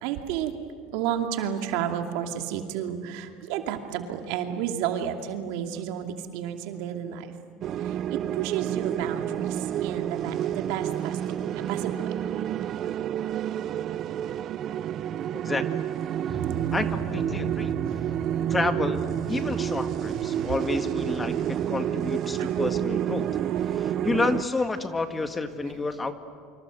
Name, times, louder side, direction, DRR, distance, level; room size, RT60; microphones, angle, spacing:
voice 1, 0.0-0.5 0.9-7.3 8.1-11.4 11.7-12.1 16.4-16.7 17.9-18.5 20.3-20.5 22.4-22.6 23.5-24.1, right 9 dB, 70° right, 5 dB, 2.6 m, -32 dB
sound 1, 7.6-24.4, right 10 dB, 45° right, 0.6 m, -29 dB
voice 2, 15.3-15.8 16.3-16.4 16.7-17.7 18.5-23.3 23.7-26.1, left 3 dB, 15° left, 8 dB, 1.7 m, -30 dB
sound 2, 16.3-24.8, right 4 dB, 20° right, 5.6 m, -40 dB
29.0 x 25.5 x 7.8 m, 2.1 s
supercardioid pair, 110°, 0 cm